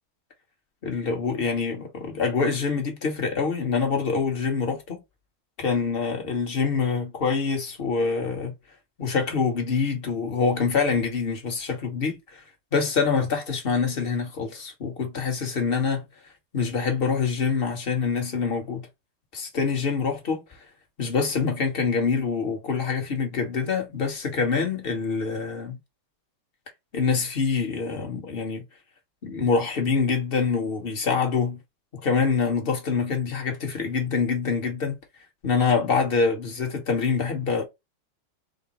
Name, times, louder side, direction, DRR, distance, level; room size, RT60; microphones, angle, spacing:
voice 1, 0.8-5.0 5.6-8.5 9.0-12.4 12.7-16.0 16.5-18.9 19.3-20.6 21.0-25.8 26.9-28.6 29.2-31.6 31.9-35.0 35.4-37.6, left 5 dB, 35° left, 1.0 m, -25 dB
5.0 x 2.0 x 4.0 m
omnidirectional pair, 2.3 m